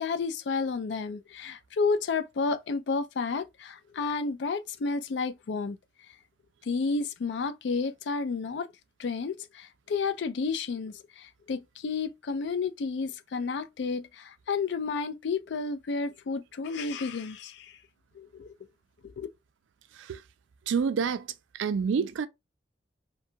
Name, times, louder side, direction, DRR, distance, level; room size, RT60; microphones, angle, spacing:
voice 1, 0.0-5.8 6.7-8.7 9.0-17.7 18.2-18.5 19.0-19.3, left 4 dB, 70° left, 0.4 m, -31 dB
voice 2, 20.7-21.3 21.5-22.3, right 6 dB, 90° right, 0.4 m, -28 dB
2.6 x 2.3 x 2.7 m
head